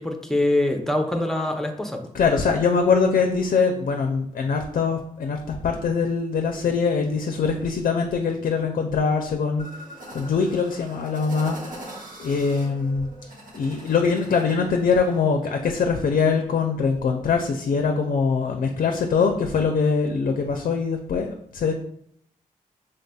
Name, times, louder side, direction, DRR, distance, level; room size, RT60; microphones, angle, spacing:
voice 1, 0.0-2.1, left 1 dB, 5° left, 4 dB, 0.6 m, -24 dB
voice 2, 2.1-9.7 10.1-11.6 12.2-13.1 13.5-21.7, left 5 dB, 70° left, 4 dB, 0.4 m, -23 dB
sound 1, 9.6-15.2, right 1 dB, 70° right, 1.2 m, -42 dB
4.0 x 3.4 x 2.3 m, 0.68 s
cardioid pair, 60°, 15 cm